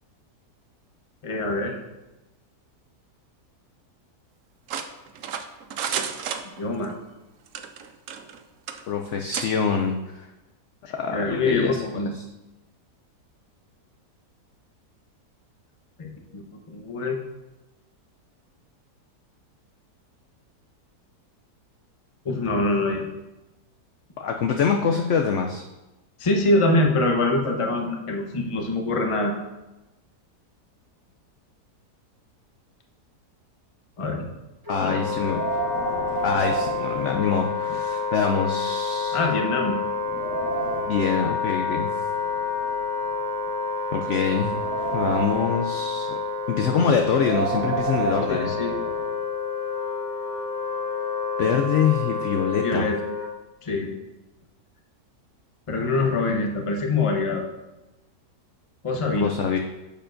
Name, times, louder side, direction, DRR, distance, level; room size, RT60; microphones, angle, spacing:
voice 1, 1.2-1.8 6.6-6.9 11.1-12.1 16.0-17.2 22.2-23.1 26.2-29.3 34.0-34.3 34.8-35.2 39.1-39.8 48.3-48.7 52.6-53.0 53.6-54.0 55.7-57.4 58.8-59.3, left 2 dB, 30° left, 2 dB, 0.6 m, -24 dB
sound 1, 4.7-6.9 7.5-8.4 8.7-8.8 9.3-9.5, right 7 dB, 65° right, 0.8 m, -31 dB
voice 2, 8.9-10.3 10.9-12.0 24.2-25.6 34.7-35.4 36.2-39.2 40.8-42.0 43.9-44.6 44.9-46.2 46.5-48.5 51.4-52.9 59.2-59.6, left 6 dB, 70° left, 3 dB, 0.7 m, -25 dB
Wind instrument woodwind instrument, 34.7-53.3, left 4 dB, 20° right, 0.5 m, -29 dB
Wind, 35.1-37.8 38.1-38.2 38.9-39.0 39.5-41.1 42.0-43.5 44.1-45.7 46.9-49.1, right 5 dB, 50° right, 1.6 m, -31 dB
10.0 x 6.8 x 2.6 m, 1.0 s
omnidirectional pair, 1.8 m